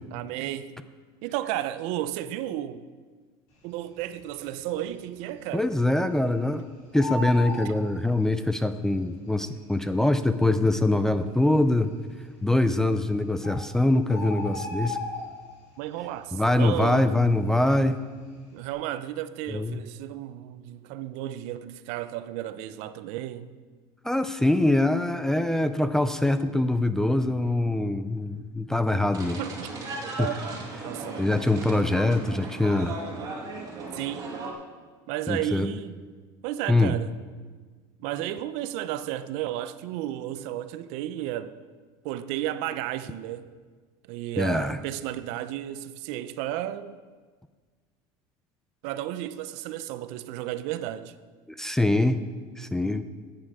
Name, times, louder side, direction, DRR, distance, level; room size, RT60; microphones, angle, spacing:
voice 1, 0.1-0.8 1.2-2.8 3.6-5.7 15.8-17.2 18.5-23.5 29.4-29.7 30.2-30.5 30.8-31.3 33.9-34.3 35.1-36.0 36.4-37.1 38.0-41.5 42.0-43.5 44.0-47.0 48.8-51.2, right 13 dB, 65° right, 0.6 m, -33 dB
Bird, 4.0-4.6 4.9-5.0 5.3-6.5 6.8-8.6 9.4-9.5 10.2-10.3 10.5-10.6 11.2-11.7 12.6-12.7 13.1-13.2 13.4-15.7 16.0-16.4 16.7-18.1 18.4-18.6, left 2 dB, 70° left, 4.0 m, -35 dB
voice 2, 5.5-6.6 6.9-11.9 12.4-15.0 16.3-18.0 19.5-19.8 24.0-29.4 30.2-30.3 31.2-32.9 35.3-35.7 36.7-36.9 44.4-44.8 51.6-52.2 52.6-53.0, left 2 dB, 5° left, 0.4 m, -23 dB
sound 1, 29.1-34.5, right 3 dB, 30° right, 2.4 m, -37 dB
13.5 x 8.6 x 4.9 m
cardioid pair, 150°, 12 cm